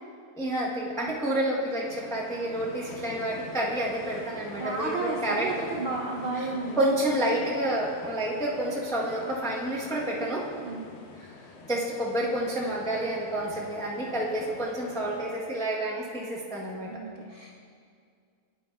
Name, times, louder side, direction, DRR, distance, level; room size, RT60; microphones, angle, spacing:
voice 1, 0.3-5.6 6.4-6.5 6.8-10.4 11.2-11.3 11.7-16.9, right 1 dB, 5° left, -4 dB, 0.5 m, -29 dB
sound 1, 1.8-15.4, left 4 dB, 65° left, 0.6 m, -46 dB
voice 2, 4.6-6.8 10.6-10.9 16.8-17.5, right 2 dB, 60° right, -2 dB, 0.5 m, -32 dB
9.8 x 8.8 x 2.2 m, 2.2 s
omnidirectional pair, 1.7 m